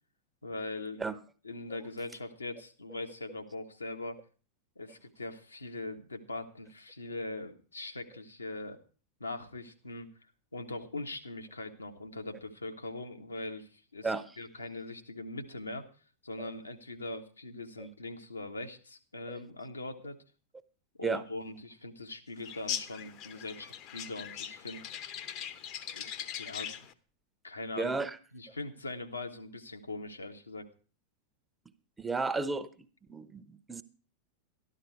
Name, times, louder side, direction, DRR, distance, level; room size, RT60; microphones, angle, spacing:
voice 1, 0.4-1.0 1.4-4.2 4.7-8.8 9.2-10.1 10.5-14.1 14.4-15.9 16.2-20.2 21.0-25.0 25.9-26.7 27.4-27.9 28.3-30.7, left 2 dB, 80° left, 5 dB, 1.4 m, -41 dB
sound 1, 22.4-26.9, left 9 dB, 40° left, 0.9 m, -40 dB
voice 2, 27.8-28.2 32.0-32.7 33.1-33.8, right 3 dB, 10° right, 12 dB, 0.9 m, -33 dB
13.0 x 11.5 x 4.6 m, 0.38 s
figure-of-eight pair, 90°, 0 cm